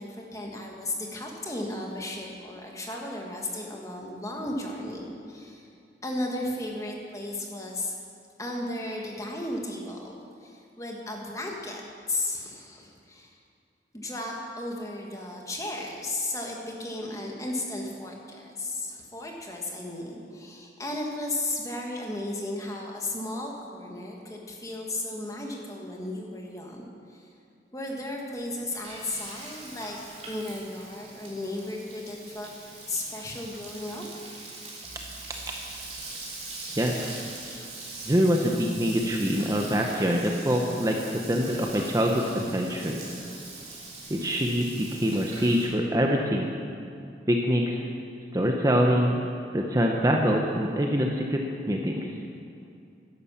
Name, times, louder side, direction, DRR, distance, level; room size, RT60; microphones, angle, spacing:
voice 1, 0.0-5.7 6.0-7.9 8.4-11.8 12.1-13.3 13.9-27.3 27.7-30.0 30.2-32.5 32.9-34.1, left 1 dB, 20° left, 0 dB, 1.6 m, -35 dB
Frying (food), 28.4-45.6, right 3 dB, 35° right, 3.2 m, -42 dB
voice 2, 38.1-43.0 44.1-46.5 47.3-47.8 48.3-49.1 49.5-52.1, equal, 20° right, 1 dB, 0.8 m, -25 dB
11.0 x 11.0 x 7.2 m, 2.4 s
head